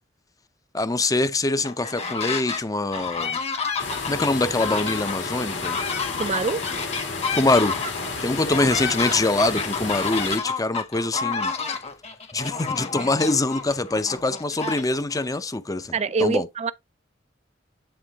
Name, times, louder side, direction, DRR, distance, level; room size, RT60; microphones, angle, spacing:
voice 1, 0.7-3.4 4.1-5.8 7.3-7.8 8.2-11.5 12.3-16.5, left 2 dB, 20° left, 0.6 m, -24 dB
sound 1, 1.6-2.6 2.9-15.2, left 5 dB, 35° left, 1.1 m, -30 dB
sound 2, 3.8-10.4, left 4 dB, 75° left, 2.3 m, -32 dB
voice 2, 6.2-6.6 15.9-16.7, right 4 dB, 35° right, 0.4 m, -24 dB
8.9 x 3.7 x 3.5 m
head